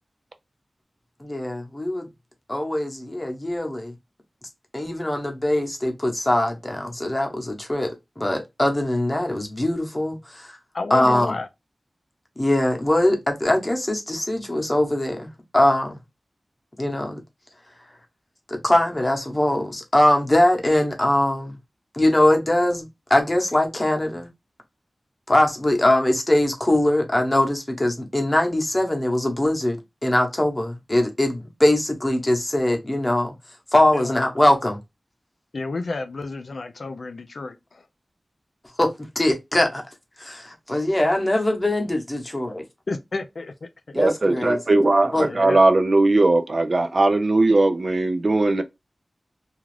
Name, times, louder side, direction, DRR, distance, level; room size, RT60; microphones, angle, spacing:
voice 1, 1.2-2.1 2.5-3.9 4.7-7.9 8.2-10.6 10.9-11.3 12.4-16.0 16.8-17.2 18.5-21.6 21.9-24.3 25.3-33.3 33.7-34.8 38.8-38.9 39.1-39.8 40.2-42.6 43.9-44.6 45.1-45.3, left 1 dB, 25° left, 0.8 m, -22 dB
voice 2, 10.7-11.5 33.9-34.2 35.5-37.8 42.9-43.7 45.2-45.6, left 3 dB, 80° left, 0.3 m, -31 dB
voice 3, 43.9-48.6, right 2 dB, 55° right, 0.4 m, -19 dB
2.4 x 2.3 x 3.2 m
wide cardioid pair, 70°, 0 cm